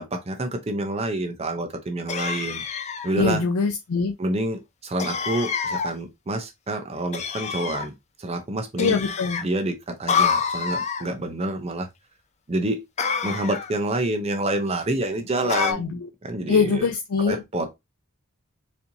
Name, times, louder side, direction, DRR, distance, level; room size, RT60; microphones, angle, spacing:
voice 1, 0.0-2.6 3.0-3.4 4.2-7.9 8.2-9.0 9.4-11.9 12.5-12.8 13.2-15.8 16.2-16.9 17.3-17.8, right 2 dB, 30° right, 0.5 m, -28 dB
sound 1, 2.1-3.1 5.0-5.9 7.1-7.9 8.8-9.4 10.1-11.1 13.0-13.8 15.5-15.7, left 6 dB, 30° left, 0.4 m, -27 dB
voice 2, 3.1-4.1 8.8-9.4 15.4-16.1 16.5-17.4, left 5 dB, 85° left, 0.5 m, -23 dB
4.2 x 2.6 x 2.7 m
head